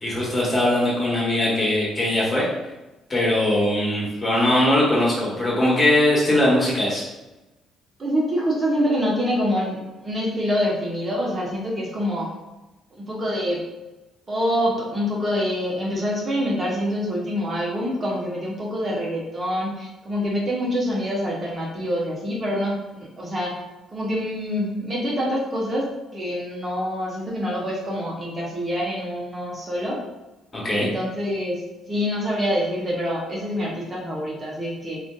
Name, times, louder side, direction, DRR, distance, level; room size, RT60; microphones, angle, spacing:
voice 1, 0.0-2.4 3.1-7.0 30.5-30.9, left 1 dB, 30° left, -6 dB, 1.2 m, -20 dB
voice 2, 8.0-12.3 13.0-13.6 14.3-23.6 23.9-30.0 30.8-31.6 31.9-35.0, equal, 35° right, -4 dB, 0.9 m, -26 dB
2.5 x 2.4 x 2.3 m, 1.0 s
hypercardioid pair, 50°, 0 cm